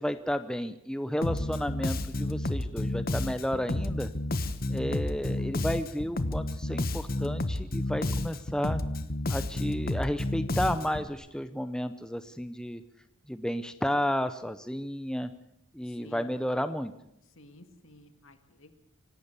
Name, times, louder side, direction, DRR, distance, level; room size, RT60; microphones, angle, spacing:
voice 1, 0.0-4.1 4.7-8.8 9.3-12.8 13.3-15.3 15.7-16.9, equal, 5° left, 11 dB, 0.7 m, -32 dB
Bass guitar, 1.2-11.1, left 1 dB, 40° left, 1.1 m, -31 dB
voice 2, 15.8-16.3 17.3-18.7, equal, 65° left, 9 dB, 2.1 m, -53 dB
25.5 x 12.0 x 8.3 m, 0.79 s
head